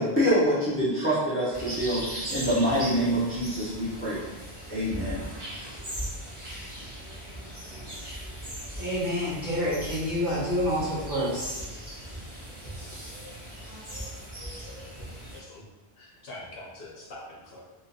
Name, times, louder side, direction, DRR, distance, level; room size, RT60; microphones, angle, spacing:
voice 1, 0.0-4.2 4.7-5.3, equal, 15° left, -9 dB, 0.6 m, -26 dB
sound 1, 1.5-15.4, equal, 25° right, 0.8 m, -38 dB
voice 2, 8.8-11.6 12.8-13.1, equal, 50° right, -9 dB, 1.2 m, -28 dB
voice 3, 15.3-15.6 16.0-17.6, left 1 dB, 65° left, -4 dB, 0.8 m, -44 dB
2.7 x 2.4 x 2.6 m, 1.1 s
omnidirectional pair, 1.1 m